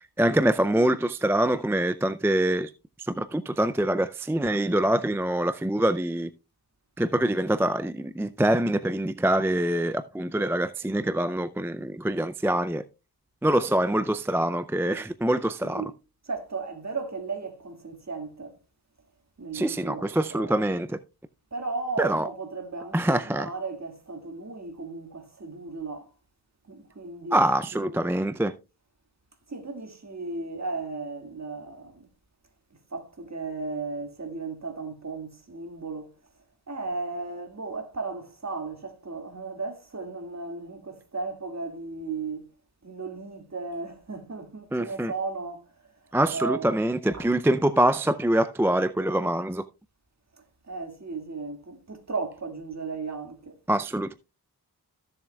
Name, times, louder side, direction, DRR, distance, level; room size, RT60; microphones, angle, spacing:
voice 1, 0.0-2.7 3.0-6.3 7.0-12.8 13.4-15.9 19.5-21.0 22.0-22.3 22.9-23.5 27.3-28.5 44.7-45.1 46.1-49.7 53.7-54.1, right 1 dB, 5° right, 0.4 m, -25 dB
voice 2, 15.6-15.9 16.3-18.6 19.4-20.5 21.5-26.1 26.7-27.4 27.7-28.0 29.5-32.1 32.7-36.2 36.7-42.5 42.8-45.9 46.2-46.7 47.1-47.2 50.4-53.6, right 4 dB, 45° right, 2.1 m, -35 dB
15.0 x 7.1 x 2.3 m
wide cardioid pair, 70°, 38 cm